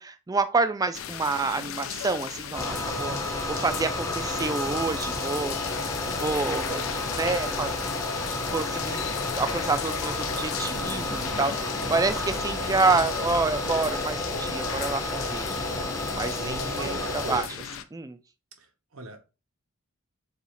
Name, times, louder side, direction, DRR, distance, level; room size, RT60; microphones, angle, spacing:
voice 1, 0.0-3.2 3.5-6.8 7.1-7.7 8.5-9.1 9.3-15.5 16.1-17.5 17.9-18.2, right 3 dB, 15° right, 0.3 m, -28 dB
sound 1, 0.9-17.8, left 8 dB, 70° left, 0.4 m, -36 dB
sound 2, 2.6-17.4, left 1 dB, 15° left, 0.6 m, -31 dB
voice 2, 2.8-3.3 16.0-17.6 18.6-18.7 18.9-19.2, right 3 dB, 75° right, 0.9 m, -40 dB
sound 3, 5.6-16.4, left 2 dB, 90° left, 1.0 m, -45 dB
6.7 x 2.4 x 3.0 m
head